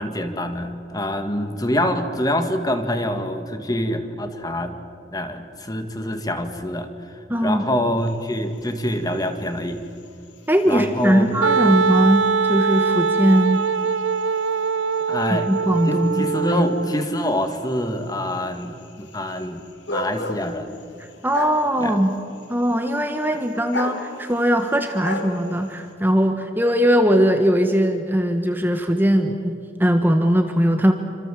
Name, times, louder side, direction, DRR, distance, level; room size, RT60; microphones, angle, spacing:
voice 1, 0.0-4.8 5.1-9.8 10.7-11.3 11.6-11.8 15.1-15.5 15.9-19.6 19.9-20.8 21.8-22.0, left 1 dB, 20° left, 7 dB, 1.9 m, -25 dB
voice 2, 7.3-7.6 10.5-13.6 15.3-16.6 21.0-22.1 22.5-30.9, equal, 10° right, 5 dB, 1.4 m, -20 dB
sound 1, 8.0-25.9, left 2 dB, 70° left, 3.3 m, -38 dB
Wind instrument woodwind instrument, 11.4-17.0, right 5 dB, 90° right, 0.7 m, -22 dB
28.0 x 26.0 x 7.7 m, 2.4 s
head